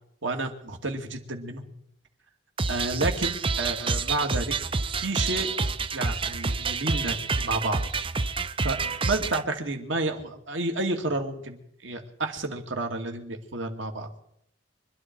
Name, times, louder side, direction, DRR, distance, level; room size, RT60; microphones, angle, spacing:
voice 1, 0.2-1.6 2.7-4.5 4.9-5.5 5.9-7.8 8.6-8.8 9.1-14.1, right 2 dB, 85° right, 4 dB, 2.5 m, -30 dB
sound 1, 2.6-9.4, right 4 dB, 30° right, 0.6 m, -28 dB
25.0 x 12.0 x 4.7 m, 0.73 s
head